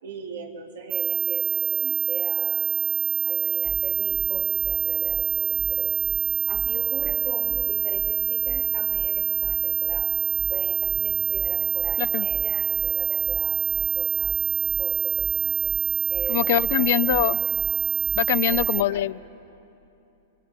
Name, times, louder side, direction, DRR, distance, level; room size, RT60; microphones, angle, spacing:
voice 1, 0.0-2.7 3.2-6.0 6.5-10.1 10.5-14.4 14.6-15.7 16.1-17.3 18.5-19.1, right 4 dB, 75° right, 2 dB, 2.8 m, -40 dB
sound 1, 0.9-18.8, right 22 dB, 45° right, 0.5 m, -25 dB
sound 2, 3.6-3.8 4.1-4.3 4.6-4.8 5.1-5.2 5.6-5.7 6.0-6.2 6.5-6.7 7.0-7.2 7.5-7.6 8.0-8.1 8.4-8.6 8.9-9.1 9.4-9.6 9.9-10.0 10.4-10.5 10.8-11.0 11.3-11.5 11.8-12.0 12.3-12.4 12.8-12.9 13.2-13.4 13.7-13.9 14.2-14.4 14.7-14.8 15.2-15.3 15.6-15.8 16.1-16.3 16.6-16.8 17.1-17.2 17.6-17.7 18.0-18.2 18.5-18.7, right 6 dB, 20° right, 1.3 m, -37 dB
voice 2, 16.3-17.4 18.1-19.2, left 14 dB, 60° left, 19 dB, 0.4 m, -23 dB
30.0 x 21.5 x 5.1 m, 2.8 s
hypercardioid pair, 145°, 0 cm